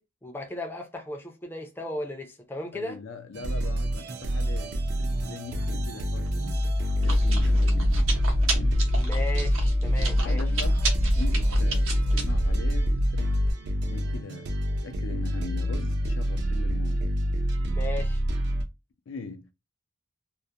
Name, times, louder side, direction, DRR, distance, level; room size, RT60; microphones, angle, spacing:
voice 1, 0.0-3.0 8.9-10.4 17.7-18.2, left 1 dB, 10° left, 0.4 m, -36 dB
voice 2, 2.7-6.7 7.0-8.9 10.2-10.8 11.2-13.4 13.9-14.5 14.8-17.1 19.1-19.5, left 4 dB, 70° left, 0.4 m, -40 dB
sound 1, 3.3-18.6, right 1 dB, 55° right, 0.4 m, -28 dB
Chewing mastication, 6.3-13.5, left 1 dB, 80° right, 0.8 m, -25 dB
2.4 x 2.0 x 2.7 m
head